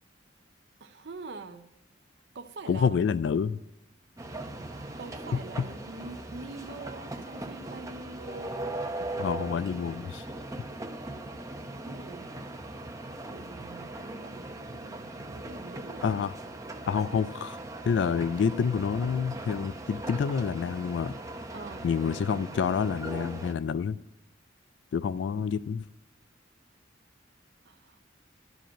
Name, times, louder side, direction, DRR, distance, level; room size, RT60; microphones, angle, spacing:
voice 1, 0.8-1.7 2.3-2.9 5.0-8.5 11.8-12.3 13.3-16.0 17.1-17.2 21.5-21.9 27.7-28.0, right 3 dB, 60° right, 0.6 m, -44 dB
voice 2, 2.7-3.6 5.3-5.7 9.2-10.3 16.0-16.3 16.9-17.5 17.8-21.2 21.8-24.0 24.9-25.9, left 6 dB, 70° left, 0.3 m, -28 dB
sound 1, 4.2-23.5, right 2 dB, 15° right, 0.7 m, -39 dB
12.0 x 5.0 x 8.8 m
head